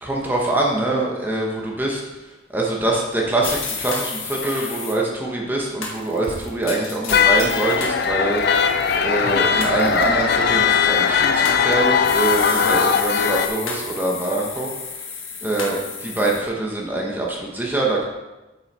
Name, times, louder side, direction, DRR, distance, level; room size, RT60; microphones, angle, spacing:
voice 1, 0.0-2.0 2.5-8.7 9.0-14.7 15.4-18.1, right 2 dB, 10° right, -3 dB, 1.0 m, -24 dB
sound 1, 3.4-4.9 5.8-8.0 8.4-9.0 9.6-10.1 11.0-11.6 12.0-16.4, left 5 dB, 85° left, 1.4 m, -31 dB
sound 2, 7.1-13.5, left 6 dB, 50° left, 0.5 m, -19 dB
7.9 x 6.8 x 4.2 m, 1.1 s
head